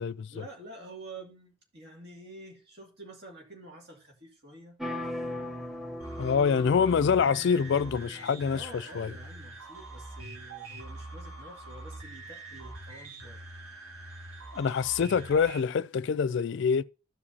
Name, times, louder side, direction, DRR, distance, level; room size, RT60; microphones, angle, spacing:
voice 1, 0.3-4.8 8.5-13.4, right 2 dB, 50° right, 2.4 m, -48 dB
sound 1, 4.8-8.6, left 1 dB, ahead, 0.7 m, -39 dB
sound 2, 6.0-15.6, right 2 dB, 80° right, 2.4 m, -44 dB
voice 2, 6.2-8.6 9.0-9.1 14.5-16.8, left 6 dB, 55° left, 0.3 m, -25 dB
14.5 x 4.9 x 2.8 m
head